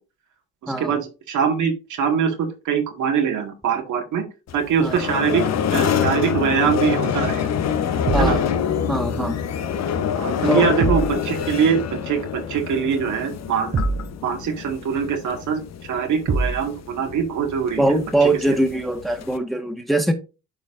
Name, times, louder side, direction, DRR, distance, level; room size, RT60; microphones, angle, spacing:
voice 1, 0.6-4.2 4.5-7.5 8.2-8.4 10.2-13.8 14.2-15.6 15.9-17.8 18.5-18.6, right 7 dB, 75° right, 3 dB, 1.8 m, -23 dB
sound 1, 4.5-19.4, left 8 dB, 60° left, 0.9 m, -26 dB
sound 2, 8.1-8.4 10.8-11.2 13.7-14.1 16.3-16.6, right 3 dB, 35° right, 1.0 m, -22 dB
voice 2, 8.9-9.4 10.4-10.7 17.8-20.1, right 1 dB, ahead, 4 dB, 1.4 m, -22 dB
11.5 x 4.2 x 2.5 m, 0.30 s
cardioid pair, 90°, 30 cm